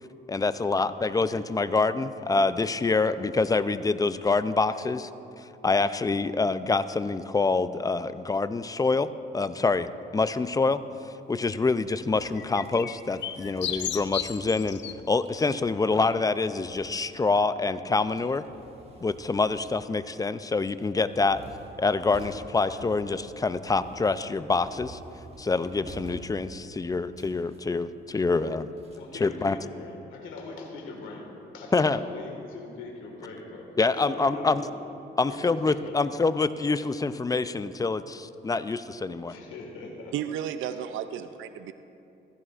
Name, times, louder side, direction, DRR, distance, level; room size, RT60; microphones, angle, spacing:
voice 1, 0.3-5.1 5.4-10.8 11.3-14.8 15.1-18.4 19.0-21.4 21.8-25.0 25.4-28.7 29.2-29.6 31.7-32.0 33.8-34.6 35.2-39.4, left 3 dB, 20° left, 13 dB, 0.4 m, -26 dB
sound 1, 12.0-17.4 17.7-29.3, right 3 dB, 30° right, 1.5 m, -49 dB
sound 2, 12.3-14.9 15.3-15.5, left 10 dB, 65° left, 0.6 m, -34 dB
voice 2, 28.9-31.3 31.5-34.7 35.3-36.0 39.3-40.1 40.7-41.2, left 3 dB, 85° left, -1 dB, 1.8 m, -42 dB
voice 3, 40.1-41.7, right 10 dB, 80° right, 11 dB, 0.5 m, -33 dB
15.5 x 15.5 x 2.5 m, 2.8 s
cardioid pair, 90°, 20 cm